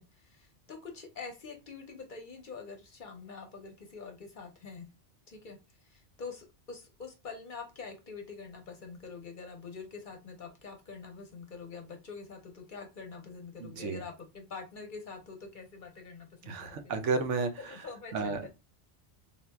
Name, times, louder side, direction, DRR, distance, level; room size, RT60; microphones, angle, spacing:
voice 1, 0.0-4.9 5.3-16.9 17.6-18.5, left 4 dB, 50° left, 0.7 m, -45 dB
voice 2, 13.6-14.0 16.5-17.8 18.1-18.5, right 4 dB, 80° right, 1.0 m, -32 dB
3.7 x 2.7 x 2.2 m
omnidirectional pair, 1.2 m